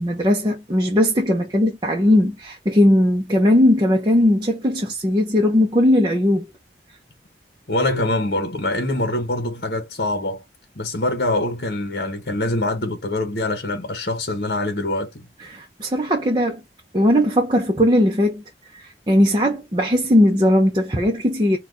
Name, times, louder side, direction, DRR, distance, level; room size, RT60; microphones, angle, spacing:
voice 1, 0.0-6.5 15.4-16.6 16.9-18.4 18.7-21.6, left 1 dB, 25° right, 0.7 m, -18 dB
voice 2, 7.7-10.4 10.7-15.3, left 2 dB, 55° left, 1.0 m, -24 dB
4.3 x 2.3 x 3.7 m
head